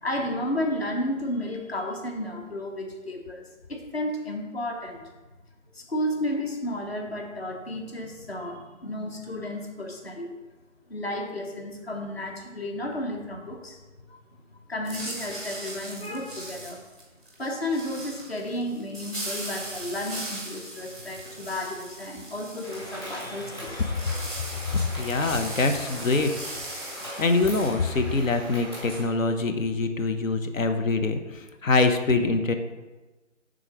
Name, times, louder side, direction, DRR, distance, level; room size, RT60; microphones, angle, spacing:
voice 1, 0.0-3.4 3.7-5.0 5.7-10.4 10.9-13.8 14.1-14.2 14.5-16.8 17.4-23.9, left 1 dB, 50° left, 2 dB, 1.0 m, -32 dB
sound 1, 14.8-27.7, right 1 dB, ahead, 0.6 m, -39 dB
sound 2, 22.6-29.0, equal, 20° left, 1.1 m, -40 dB
voice 2, 24.7-26.3 27.0-32.5, left 3 dB, 75° left, 7 dB, 0.8 m, -24 dB
6.3 x 3.8 x 4.5 m, 1.2 s
figure-of-eight pair, 170°, 40 cm